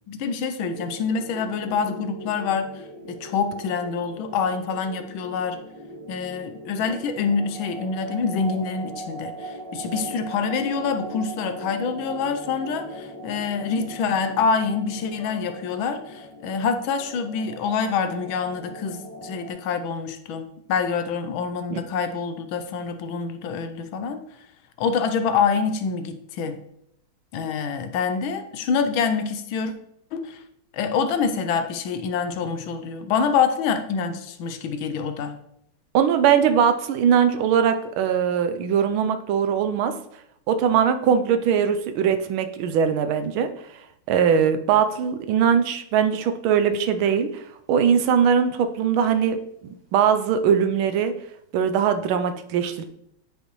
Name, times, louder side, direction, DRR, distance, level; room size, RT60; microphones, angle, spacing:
voice 1, 0.1-5.6 6.1-24.2 24.8-26.6 27.3-29.7 30.1-30.4 30.7-35.4, left 5 dB, 75° left, 8 dB, 1.4 m, -26 dB
sound 1, 0.7-19.5, right 1 dB, 30° right, 0.4 m, -39 dB
voice 2, 35.9-39.9 40.5-43.5 44.1-47.4 47.7-49.4 49.9-51.1 51.5-52.8, right 7 dB, 80° right, 9 dB, 1.4 m, -21 dB
9.5 x 5.2 x 3.1 m, 0.74 s
omnidirectional pair, 2.3 m